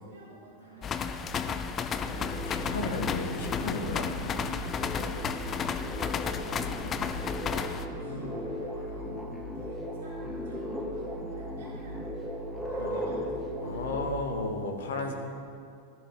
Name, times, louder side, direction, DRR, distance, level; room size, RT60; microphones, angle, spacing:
voice 1, 0.0-1.3 4.9-13.8 14.8-15.1, right 2 dB, 55° right, -8 dB, 1.6 m, -53 dB
sound 1, 0.6-8.9, equal, 80° left, 1.5 m, -56 dB
sound 2, 0.8-7.9, left 6 dB, 25° left, 0.4 m, -33 dB
sound 3, 2.0-14.2, equal, ahead, 0.9 m, -37 dB
voice 2, 2.1-4.1 12.8-13.0 13.6-15.1, left 2 dB, 60° left, 3 dB, 1.1 m, -34 dB
13.5 x 4.7 x 3.7 m, 2.4 s
figure-of-eight pair, 90°, 0 cm